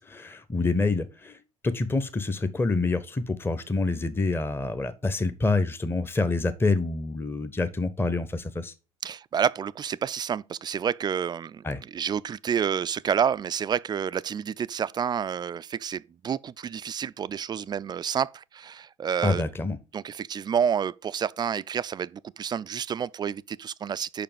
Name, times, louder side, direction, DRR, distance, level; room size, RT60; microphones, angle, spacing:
voice 1, 0.0-8.7 11.6-11.8 19.2-19.8, left 3 dB, 15° left, 0.8 m, -27 dB
voice 2, 9.0-11.6 11.9-19.4 19.9-24.2, right 8 dB, 25° right, 0.3 m, -29 dB
6.8 x 5.3 x 5.1 m
hypercardioid pair, 65°, 17 cm